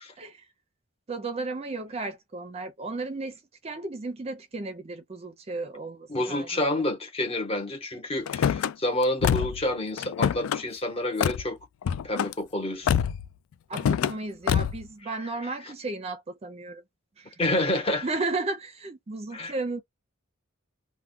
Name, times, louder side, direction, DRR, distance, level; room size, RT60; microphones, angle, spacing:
voice 1, 1.1-6.8 13.7-16.8 17.2-17.4 18.0-19.8, right 3 dB, 30° right, 0.5 m, -34 dB
voice 2, 6.1-11.6 12.0-13.0 17.4-18.0 19.3-19.5, left 1 dB, 30° left, 0.9 m, -28 dB
Car / Slam, 8.3-8.7 9.2-9.7 10.0-10.6 11.2-11.4 11.8-12.3 12.9-13.3 13.7-14.1 14.5-14.8, left 8 dB, 90° left, 0.3 m, -25 dB
2.2 x 2.2 x 3.5 m
head